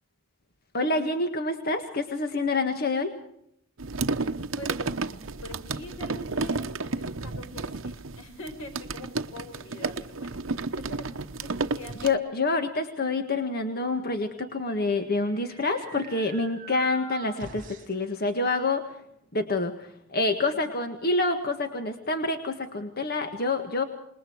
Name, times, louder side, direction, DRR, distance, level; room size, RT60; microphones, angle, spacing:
voice 1, 0.7-3.1 12.0-19.0 19.3-23.8, left 3 dB, 50° left, 6 dB, 1.7 m, -27 dB
sound 1, 3.8-12.1, right 3 dB, 70° right, 1.0 m, -32 dB
voice 2, 4.6-12.1 19.1-19.2 20.5-20.7, left 1 dB, 90° left, 5 dB, 6.0 m, -44 dB
sound 2, 14.4-18.1, right 4 dB, 45° right, 6.1 m, -46 dB
27.5 x 21.0 x 4.7 m, 0.75 s
head